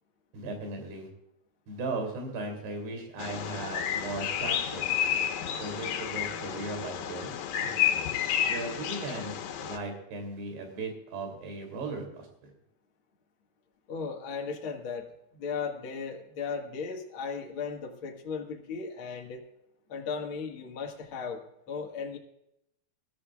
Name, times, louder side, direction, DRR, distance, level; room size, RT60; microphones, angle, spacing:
voice 1, 0.3-1.1 1.7-5.3 5.6-7.3 8.4-9.3 9.6-12.5, right 3 dB, 85° right, 4 dB, 5.3 m, -37 dB
Bird vocalization bird call bird song, 3.2-9.8, left 9 dB, 90° left, 3.4 m, -31 dB
voice 2, 13.9-15.1 15.3-19.4 19.9-21.4 21.7-22.2, left 5 dB, 45° left, 1 dB, 1.8 m, -36 dB
21.0 x 13.5 x 2.4 m, 0.81 s
omnidirectional pair, 4.6 m